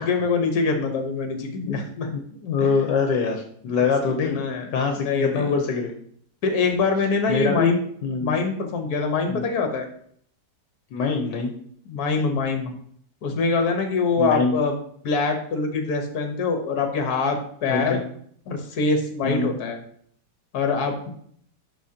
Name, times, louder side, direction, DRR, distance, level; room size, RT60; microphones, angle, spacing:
voice 1, 0.0-2.1 2.6-2.7 3.7-3.9 4.2-4.7 5.0-5.6 6.4-7.8 8.2-9.9 11.9-12.7 13.2-14.8 15.0-18.0 18.5-19.8 20.5-21.1, left 4 dB, 60° left, 5 dB, 1.5 m, -24 dB
voice 2, 2.1-4.4 4.7-5.9 7.3-7.8 8.0-8.3 9.3-9.4 10.9-11.5 14.2-14.5 17.7-18.0 19.2-19.5, left 5 dB, 80° left, 3 dB, 1.5 m, -24 dB
11.5 x 4.0 x 2.8 m, 0.62 s
omnidirectional pair, 1.9 m